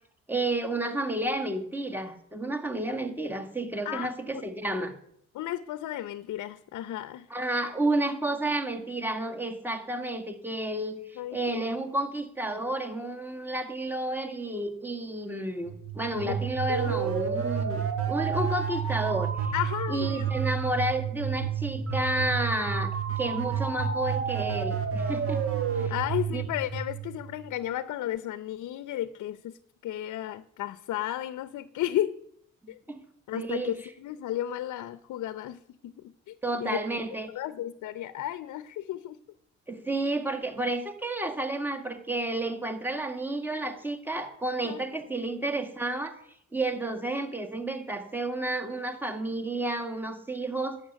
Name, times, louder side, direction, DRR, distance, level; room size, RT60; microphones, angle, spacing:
voice 1, 0.3-4.9 7.3-19.4 19.9-22.9 23.2-25.4 25.7-25.9 26.3-26.4 32.6-33.0 33.3-33.7 36.4-37.3 39.7-46.2 46.5-50.8, right 2 dB, 5° right, 5 dB, 2.0 m, -31 dB
voice 2, 3.8-4.4 5.3-7.3 11.2-11.6 16.2-16.4 16.7-17.0 19.5-20.3 25.9-32.2 32.7-32.8 33.3-37.0 37.3-39.2 44.6-44.8, left 12 dB, 75° left, 14 dB, 0.7 m, -34 dB
sound 1, 15.7-27.5, right 7 dB, 50° right, 1.9 m, -30 dB
11.5 x 7.2 x 9.2 m, 0.68 s
cardioid pair, 90°, 30 cm